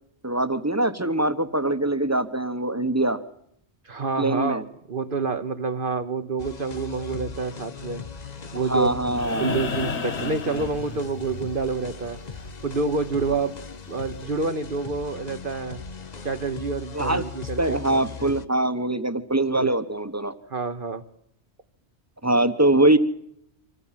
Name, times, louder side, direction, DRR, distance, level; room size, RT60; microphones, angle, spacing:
voice 1, 0.2-3.2 4.2-4.6 8.7-9.6 16.9-17.2 17.6-20.3 22.2-23.0, right 1 dB, 15° right, 11 dB, 1.0 m, -23 dB
voice 2, 3.8-4.6 4.9-8.0 8.5-8.9 9.4-15.8 16.2-18.3 19.5-19.7 20.5-21.0, right 4 dB, 50° right, 9 dB, 1.1 m, -28 dB
sound 1, 6.4-18.5, left 5 dB, 40° left, 1.0 m, -39 dB
sound 2, 9.1-11.4 13.3-13.4, left 4 dB, 70° left, 1.5 m, -32 dB
25.0 x 15.0 x 7.4 m, 0.72 s
omnidirectional pair, 1.2 m